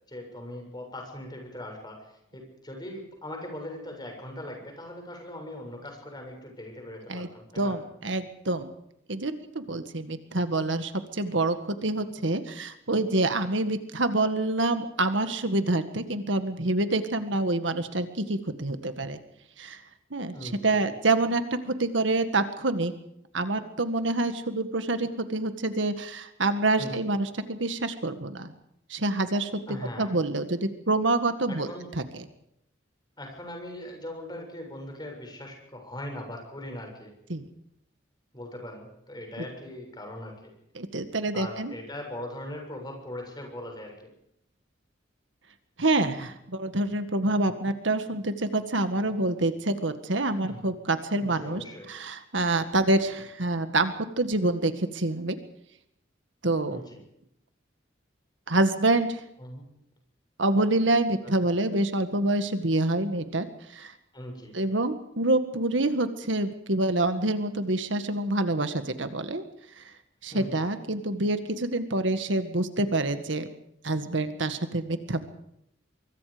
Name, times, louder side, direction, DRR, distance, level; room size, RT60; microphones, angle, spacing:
voice 1, 0.1-7.8 20.3-20.9 26.8-27.1 29.7-30.1 31.5-31.9 33.2-37.1 38.3-40.5 41.3-44.1 50.5-50.6 51.3-51.9 56.7-57.0 59.4-59.6 61.2-61.3 64.1-64.5 70.3-70.7, left 1 dB, 25° left, 2 dB, 7.2 m, -40 dB
voice 2, 7.6-8.7 9.1-11.6 11.8-19.2 19.6-19.8 20.1-22.9 23.3-28.5 28.9-29.5 30.0-31.7 32.0-32.1 37.3-37.5 39.4-39.5 40.8-41.7 45.8-55.4 56.4-56.8 58.5-59.2 60.4-63.5 63.7-63.9 64.5-69.4 70.2-73.5 73.8-75.2, right 2 dB, 75° right, 9 dB, 1.8 m, -27 dB
24.5 x 24.0 x 5.2 m, 0.76 s
head